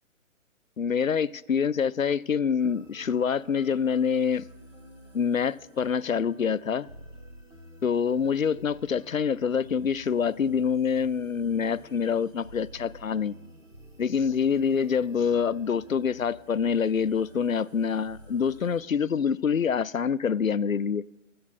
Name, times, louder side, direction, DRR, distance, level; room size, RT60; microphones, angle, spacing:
voice 1, 0.8-4.5 5.1-6.9 7.8-13.3 14.0-21.1, left 6 dB, 90° left, 0.6 m, -26 dB
sound 1, 2.6-18.8, right 1 dB, 70° right, 2.4 m, -50 dB
21.0 x 7.8 x 4.0 m
figure-of-eight pair, 125°, 39 cm